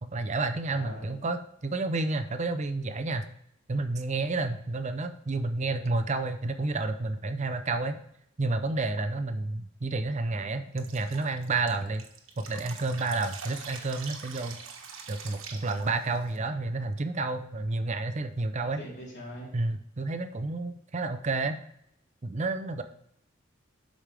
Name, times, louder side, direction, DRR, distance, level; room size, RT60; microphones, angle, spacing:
voice 1, 0.0-3.3 3.7-8.0 8.4-12.0 12.4-14.6 15.1-18.8 19.5-21.6 22.2-22.8, right 3 dB, 35° right, 9 dB, 0.6 m, -30 dB
voice 2, 0.7-1.1 18.8-19.5, equal, 60° left, -4 dB, 3.7 m, -42 dB
Drip, 10.8-16.4, right 6 dB, 90° right, 1.3 m, -44 dB
12.0 x 5.2 x 3.3 m, 0.75 s
head